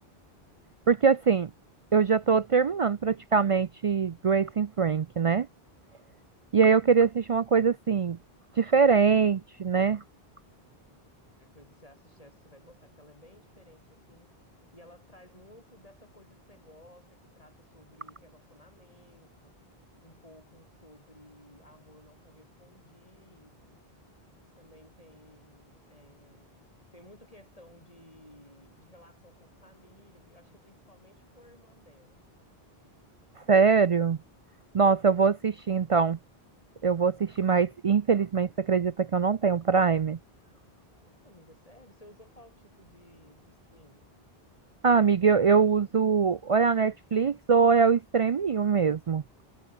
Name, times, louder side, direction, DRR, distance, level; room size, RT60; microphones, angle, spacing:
voice 1, 0.9-1.5 1.9-5.5 6.5-8.2 8.6-10.0 33.5-34.2 34.7-36.2 36.8-40.2 44.8-49.2, right 5 dB, 50° right, 0.4 m, -23 dB
voice 2, 2.5-2.9 11.3-14.4 14.7-19.5 20.0-23.8 24.6-26.5 26.9-32.2 40.9-44.1, left 1 dB, 35° left, 8.2 m, -57 dB
omnidirectional pair, 1.0 m